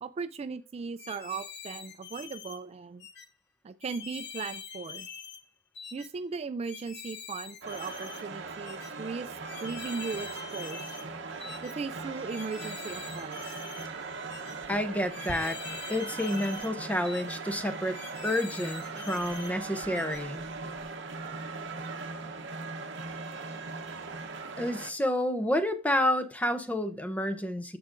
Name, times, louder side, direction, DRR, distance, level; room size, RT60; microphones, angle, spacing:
voice 1, 0.0-3.1 3.6-5.1 5.9-11.0 11.6-13.6 23.5-23.6, right 5 dB, 30° right, 0.3 m, -38 dB
sound 1, 1.0-2.6 3.0-3.3 3.8-5.4 5.8-6.1 6.6-8.2 8.6-8.9 9.5-11.1 11.4-11.7 12.3-13.9 14.3-14.6 15.1-16.7 17.0-17.4 17.9-19.5 19.9-20.2, left 7 dB, 60° left, 0.8 m, -44 dB
sound 2, 7.6-24.9, right 4 dB, 65° right, 0.9 m, -39 dB
voice 2, 14.7-15.6 15.9-18.0 18.2-20.5 24.6-27.8, left 1 dB, 5° left, 0.6 m, -29 dB
13.5 x 4.7 x 2.5 m
head